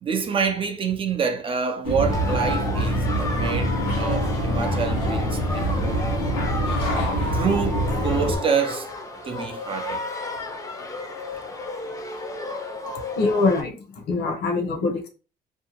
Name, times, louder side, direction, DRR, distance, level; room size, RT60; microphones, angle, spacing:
voice 1, 0.0-6.1 7.3-8.9 9.2-10.0, right 6 dB, 30° right, 0.5 m, -27 dB
sound 1, 1.8-8.4, equal, 90° left, 1.1 m, -25 dB
sound 2, 2.1-13.6, left 2 dB, 20° left, 0.5 m, -32 dB
voice 2, 13.2-15.1, left 3 dB, 70° left, 0.8 m, -24 dB
2.6 x 2.1 x 2.9 m
cardioid pair, 110°, 17 cm